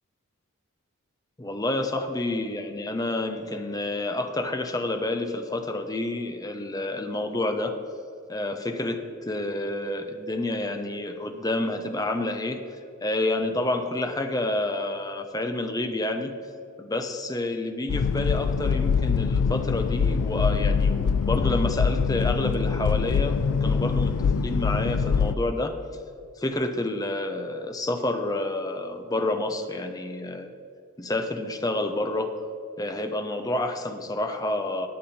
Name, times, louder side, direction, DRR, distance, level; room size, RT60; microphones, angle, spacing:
voice 1, 1.4-7.8 8.3-9.0 9.3-12.6 13.0-16.4 16.8-25.8 26.4-30.5 31.0-32.3 32.8-34.9, left 2 dB, 15° left, 6 dB, 0.8 m, -29 dB
sound 1, 17.9-25.4, left 5 dB, 90° left, 0.4 m, -24 dB
19.0 x 7.4 x 4.3 m, 2.6 s
head